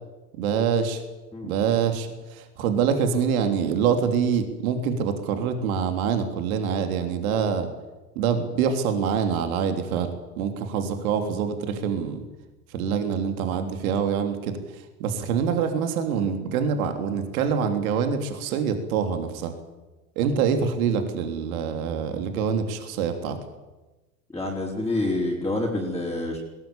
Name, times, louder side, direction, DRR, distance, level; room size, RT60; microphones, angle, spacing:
voice 1, 0.4-1.0 1.4-7.7 8.2-12.2 12.7-19.5 20.2-23.4, right 7 dB, 65° right, 7 dB, 3.5 m, -25 dB
voice 2, 24.3-26.4, left 2 dB, 5° left, -3 dB, 5.1 m, -27 dB
21.0 x 19.0 x 9.1 m, 1.1 s
hypercardioid pair, 95°, 45 cm